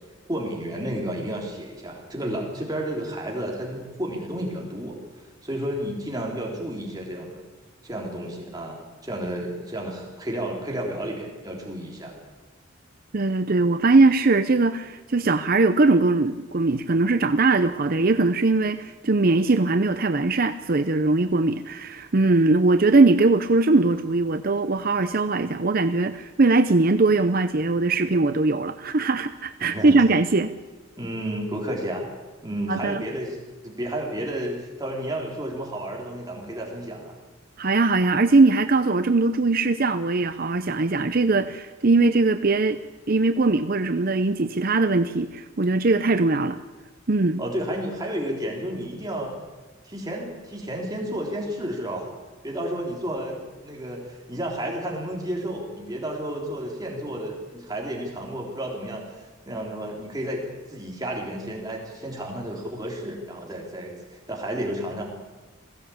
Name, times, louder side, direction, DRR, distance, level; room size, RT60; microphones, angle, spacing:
voice 1, 0.3-7.4 7.8-12.2 29.6-30.0 31.0-32.1 32.4-33.4 33.6-37.2 47.4-49.3 49.8-52.1 52.4-60.4 60.7-65.0, right 1 dB, 20° right, -1 dB, 3.6 m, -32 dB
voice 2, 13.1-30.5 32.7-33.0 37.6-42.8 43.1-46.6 47.1-47.4, right 3 dB, 45° right, 10 dB, 0.7 m, -20 dB
21.5 x 16.0 x 8.6 m, 1.2 s
head